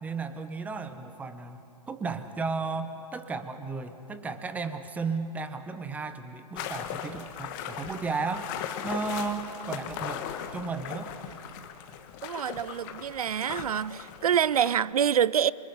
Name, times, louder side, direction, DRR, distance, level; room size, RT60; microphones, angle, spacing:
voice 1, 0.0-8.5 8.8-10.3 10.5-11.1, right 4 dB, 5° right, 0.7 m, -34 dB
sound 1, 6.6-14.7, left 9 dB, 30° left, 1.4 m, -38 dB
voice 2, 12.2-15.5, right 9 dB, 60° right, 0.5 m, -26 dB
28.0 x 25.5 x 5.5 m
hypercardioid pair, 135°, 21 cm